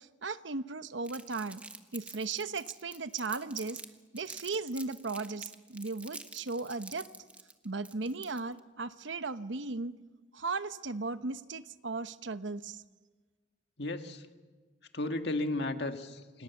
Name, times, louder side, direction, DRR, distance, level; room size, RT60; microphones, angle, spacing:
voice 1, 0.0-1.6 1.9-3.8 4.1-7.1 7.6-10.0 10.3-12.8, right 3 dB, 75° right, 12 dB, 1.0 m, -36 dB
Crumpling crinkling, 1.0-3.9 4.2-8.6, right 2 dB, 5° right, 1.4 m, -47 dB
voice 2, 13.8-14.3 14.9-16.4, left 2 dB, 60° left, 6 dB, 1.9 m, -34 dB
28.5 x 27.0 x 7.1 m, 1.3 s
head